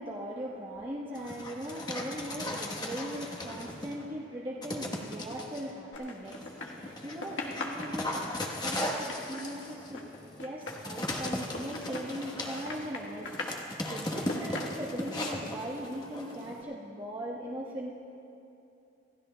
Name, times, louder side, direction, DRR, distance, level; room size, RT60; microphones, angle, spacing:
voice 1, 0.0-10.1 10.4-13.4 13.8-17.9, equal, 25° right, -5 dB, 1.1 m, -39 dB
Dog, 1.1-4.0 4.6-5.6 6.3-16.6, left 1 dB, 20° left, 1.1 m, -37 dB
sound 1, 5.9-6.9 7.2-12.4 12.6-13.6 14.1-15.2, left 2 dB, 80° left, 1.4 m, -40 dB
27.0 x 15.5 x 2.2 m, 2.8 s
head